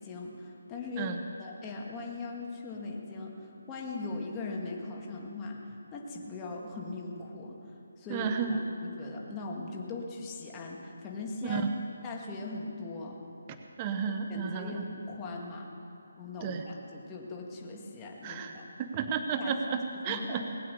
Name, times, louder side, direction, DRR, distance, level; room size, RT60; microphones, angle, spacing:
voice 1, 0.0-11.6 12.0-13.2 14.0-15.7 16.2-18.7 19.4-19.5 19.9-20.5, left 3 dB, 15° left, -1 dB, 1.7 m, -40 dB
voice 2, 8.1-8.7 11.4-11.6 13.8-14.8 16.4-16.6 18.2-20.4, right 6 dB, 20° right, 5 dB, 0.7 m, -32 dB
20.0 x 8.5 x 6.8 m, 2.8 s
hypercardioid pair, 165°, 0 cm